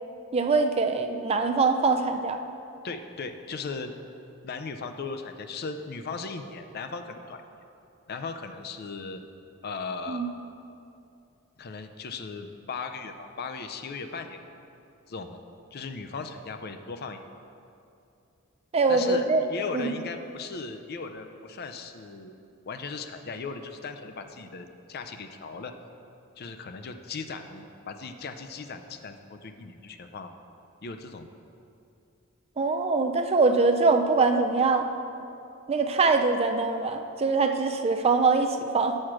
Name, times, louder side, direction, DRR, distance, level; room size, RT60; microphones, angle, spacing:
voice 1, 0.3-2.4 10.1-10.3 18.7-19.5 19.7-19.9 32.6-34.9 35.7-39.0, right 4 dB, 30° right, 6 dB, 0.4 m, -23 dB
voice 2, 2.8-3.9 4.4-7.4 8.1-9.2 9.6-10.2 11.6-14.4 15.1-15.4 15.7-17.2 18.9-22.3 22.6-25.7 26.4-29.2 29.4-30.3 30.8-31.3, left 4 dB, 50° left, 7 dB, 0.5 m, -37 dB
6.5 x 6.3 x 5.9 m, 2.6 s
head